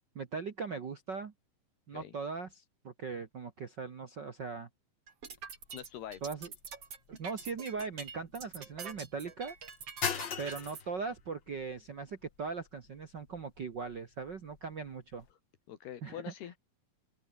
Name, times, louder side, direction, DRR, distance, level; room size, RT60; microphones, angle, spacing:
voice 1, 0.1-1.3 1.9-4.7 6.2-6.5 7.1-9.5 10.4-15.2 16.0-16.3, right 5 dB, 75° right, 1.0 m, -40 dB
sound 1, 5.1-10.8, right 6 dB, 40° right, 3.7 m, -45 dB
sound 2, 5.2-15.3, left 7 dB, 45° left, 1.5 m, -44 dB
voice 2, 5.7-6.2 15.7-16.6, left 10 dB, 80° left, 4.1 m, -44 dB
open air
omnidirectional pair, 4.6 m